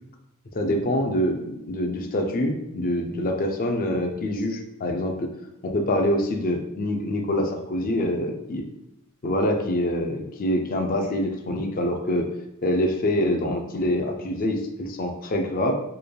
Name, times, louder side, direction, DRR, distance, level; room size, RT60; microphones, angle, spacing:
voice 1, 0.5-5.3 5.6-8.6 9.2-12.3 12.6-15.7, left 1 dB, 40° left, 4 dB, 0.4 m, -25 dB
4.4 x 3.3 x 2.2 m, 0.85 s
head